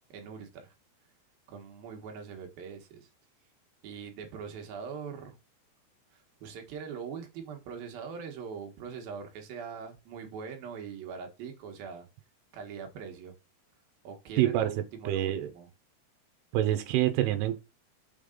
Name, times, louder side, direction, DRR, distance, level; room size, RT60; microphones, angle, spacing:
voice 1, 0.1-0.7 1.5-3.1 3.8-5.4 6.1-12.1 12.5-13.3 14.0-15.7, right 6 dB, 65° right, 2.8 m, -42 dB
voice 2, 14.4-14.7 15.1-15.5 16.5-17.6, right 13 dB, 90° right, 2.8 m, -26 dB
6.6 x 5.1 x 3.7 m
omnidirectional pair, 4.8 m